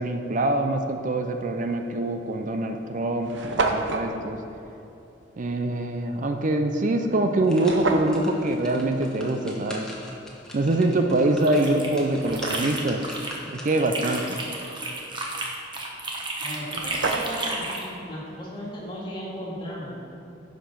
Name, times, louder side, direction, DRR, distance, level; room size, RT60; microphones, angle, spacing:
voice 1, 0.0-4.4 5.4-9.9 10.5-13.0 13.5-14.4, right 2 dB, 45° right, 5 dB, 0.5 m, -24 dB
sound 1, 1.7-1.9 2.6-2.7 2.9-3.0 3.2-4.1 7.5-8.2 11.1-11.2 11.8-12.9 16.3-16.4 16.6-17.6, right 3 dB, 75° right, 0.8 m, -29 dB
sound 2, 7.1-14.0 14.4-14.5, left 1 dB, 5° left, 1.3 m, -43 dB
sound 3, 11.2-13.4 13.7-17.9, right 2 dB, 25° right, 1.2 m, -32 dB
voice 2, 16.4-20.0, equal, 25° left, -5 dB, 2.1 m, -36 dB
9.9 x 5.2 x 5.9 m, 2.8 s
head